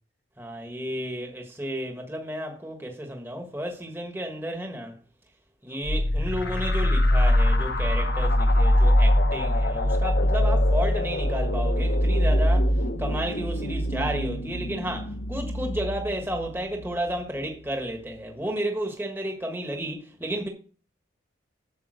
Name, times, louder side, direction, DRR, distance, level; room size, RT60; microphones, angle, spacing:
voice 1, 0.4-4.9 5.6-12.7 13.0-20.5, right 1 dB, 10° right, 1.4 m, -32 dB
sound 1, 5.8-17.2, left 1 dB, 55° left, 1.1 m, -23 dB
8.5 x 7.3 x 6.3 m
head